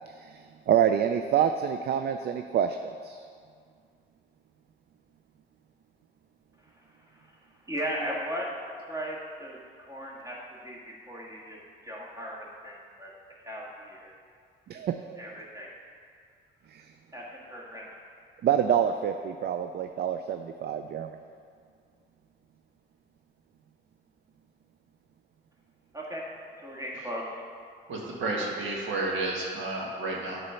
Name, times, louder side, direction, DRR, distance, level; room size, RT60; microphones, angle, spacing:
voice 1, 0.1-3.2 14.7-15.2 16.7-16.9 18.4-21.2, right 9 dB, 55° right, 8 dB, 0.4 m, -27 dB
voice 2, 7.7-8.5 8.8-13.1 13.4-14.1 15.1-15.7 17.1-17.9 25.9-26.3 26.6-27.3, equal, 15° right, -4 dB, 1.7 m, -37 dB
voice 3, 27.9-30.4, right 2 dB, 75° right, -3 dB, 1.7 m, -31 dB
8.7 x 4.1 x 5.6 m, 2.2 s
cardioid pair, 90°, 20 cm